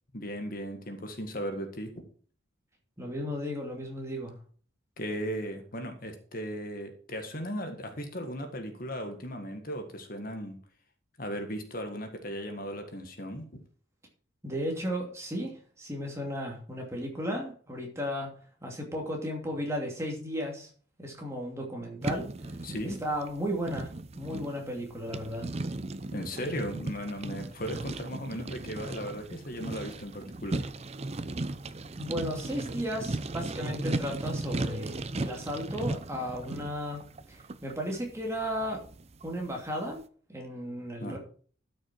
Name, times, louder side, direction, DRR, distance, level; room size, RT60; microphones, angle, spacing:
voice 1, 0.1-2.0 5.0-10.6 11.2-13.4 22.6-23.0 26.1-30.6 41.0-41.2, equal, 45° left, 6 dB, 1.7 m, -36 dB
voice 2, 3.0-4.3 14.4-18.3 18.6-20.7 21.0-22.5 22.8-25.5 31.9-37.0 37.3-38.8 39.2-40.0 40.3-41.2, equal, 15° right, 0 dB, 2.7 m, -35 dB
sound 1, 22.0-39.7, right 2 dB, 30° right, 0.6 m, -37 dB
13.0 x 6.4 x 4.6 m, 0.44 s
head